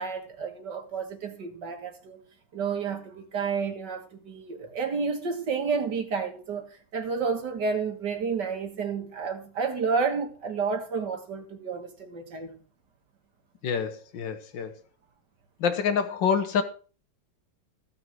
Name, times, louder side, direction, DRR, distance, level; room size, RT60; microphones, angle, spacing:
voice 1, 0.0-2.2 2.5-12.6, right 5 dB, 70° right, 2.2 m, -30 dB
voice 2, 13.6-14.8 15.6-16.6, left 6 dB, 85° left, 1.9 m, -27 dB
15.0 x 5.9 x 6.2 m
omnidirectional pair, 2.0 m